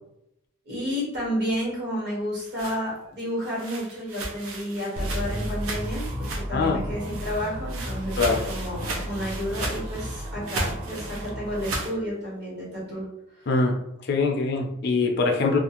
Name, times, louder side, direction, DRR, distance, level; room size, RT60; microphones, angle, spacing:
voice 1, 0.7-13.0, equal, 50° right, -5 dB, 1.2 m, -31 dB
sound 1, 2.2-6.7 7.0-12.0, right 2 dB, 85° right, 0.6 m, -36 dB
sound 2, 5.0-11.8, equal, 25° right, 0.4 m, -33 dB
voice 2, 6.5-6.9 8.2-8.4 13.5-15.6, left 3 dB, 50° left, 3 dB, 0.4 m, -23 dB
2.4 x 2.3 x 2.8 m, 0.81 s
head